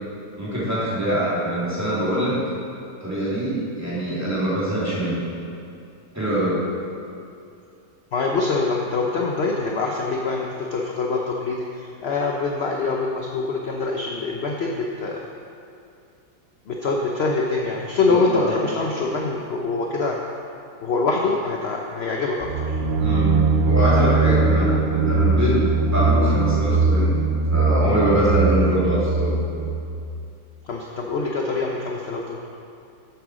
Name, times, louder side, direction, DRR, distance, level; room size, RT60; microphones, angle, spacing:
voice 1, 0.4-2.4 3.0-5.2 6.1-6.6 18.1-18.6 23.0-27.1 27.5-29.3, right 1 dB, 10° right, -9 dB, 2.9 m, -23 dB
voice 2, 8.1-15.2 16.7-20.2 20.8-22.8 30.6-32.4, left 3 dB, 55° left, -1 dB, 0.7 m, -24 dB
sound 1, 22.4-30.1, right 3 dB, 75° right, 0.5 m, -20 dB
8.4 x 8.1 x 6.3 m, 2.6 s
omnidirectional pair, 2.0 m